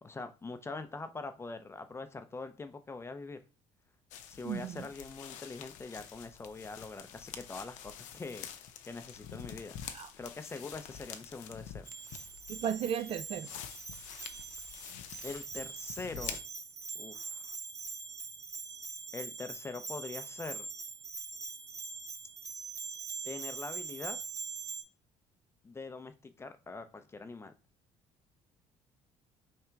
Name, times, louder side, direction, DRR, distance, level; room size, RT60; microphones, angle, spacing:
voice 1, 0.0-3.4 4.3-9.8 10.2-11.9 15.2-16.4 16.9-17.6 19.1-20.7 23.2-24.2 25.6-27.5, left 3 dB, 20° left, 0.6 m, -43 dB
sound 1, 4.1-16.4, left 9 dB, 80° left, 0.5 m, -47 dB
voice 2, 4.4-4.9 9.9-10.1 12.5-13.5, right 9 dB, 50° right, 0.4 m, -35 dB
Bell, 11.9-24.8, right 5 dB, 25° right, 0.7 m, -43 dB
3.4 x 2.8 x 4.4 m
cardioid pair, 95°, 13 cm